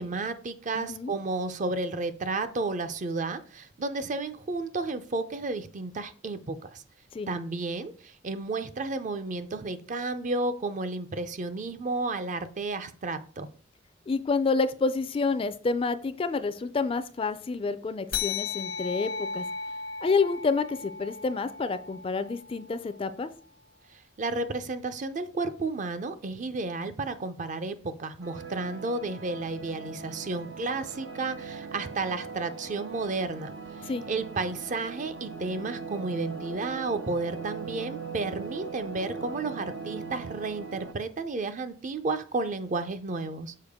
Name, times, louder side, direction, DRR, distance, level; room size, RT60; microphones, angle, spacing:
voice 1, 0.0-6.8 7.3-13.5 24.2-43.5, right 3 dB, 40° right, 10 dB, 0.5 m, -32 dB
voice 2, 0.7-1.1 7.1-7.3 14.1-19.4 20.0-23.3 33.9-34.1, left 4 dB, 30° left, 13 dB, 0.4 m, -28 dB
sound 1, 18.1-23.0, left 6 dB, 80° left, 0.9 m, -36 dB
sound 2, 28.2-40.9, right 5 dB, 85° right, 0.6 m, -40 dB
6.6 x 4.5 x 3.5 m, 0.43 s
head